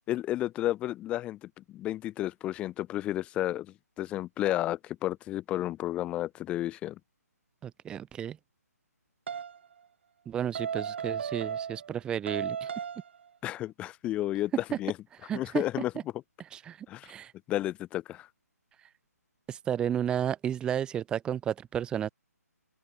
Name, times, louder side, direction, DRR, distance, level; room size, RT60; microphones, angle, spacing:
voice 1, 0.1-7.0 13.4-14.5 14.8-14.9 15.3-15.9 16.9-17.1 17.5-18.3, left 14 dB, 10° left, 1.2 m, -32 dB
voice 2, 7.6-8.4 10.3-12.7 14.7-14.8 15.3-15.6 16.5-17.3 19.5-22.1, right 9 dB, 10° right, 2.9 m, -32 dB
sound 1, 9.3-9.6 10.5-12.0 12.3-13.2, right 7 dB, 40° right, 0.9 m, -35 dB
open air
figure-of-eight pair, 140°, 9 cm